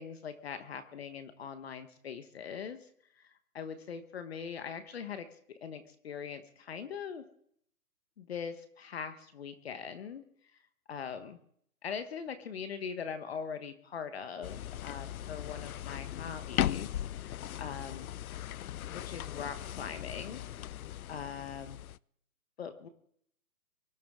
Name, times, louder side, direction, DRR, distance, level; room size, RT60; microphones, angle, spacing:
voice 1, 0.0-2.9 3.2-7.2 8.2-10.2 10.9-11.4 11.8-18.1 18.9-20.8 21.1-21.8 22.6-22.9, left 6 dB, 40° left, 10 dB, 1.2 m, -42 dB
sound 1, 14.4-22.0, left 12 dB, 65° left, 0.5 m, -38 dB
24.0 x 12.5 x 3.7 m, 0.65 s
hypercardioid pair, 155°, 45 cm